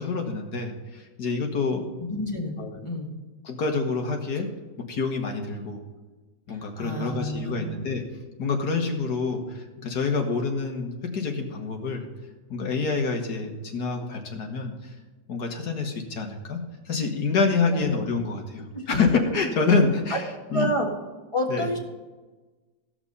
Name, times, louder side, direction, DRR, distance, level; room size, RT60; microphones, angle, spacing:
voice 1, 0.0-1.9 2.6-2.8 3.4-4.5 4.9-5.8 6.5-8.0 8.4-12.1 12.5-14.9 15.3-16.6 16.9-20.8 21.5-21.7, left 4 dB, 60° left, 3 dB, 1.9 m, -27 dB
voice 2, 2.0-2.6 2.8-3.1 6.8-7.7 17.7-18.0 18.7-19.2 20.1-20.2 20.5-20.9 21.3-21.8, left 1 dB, 15° left, -1 dB, 1.5 m, -29 dB
16.0 x 5.9 x 5.5 m, 1.2 s
omnidirectional pair, 2.1 m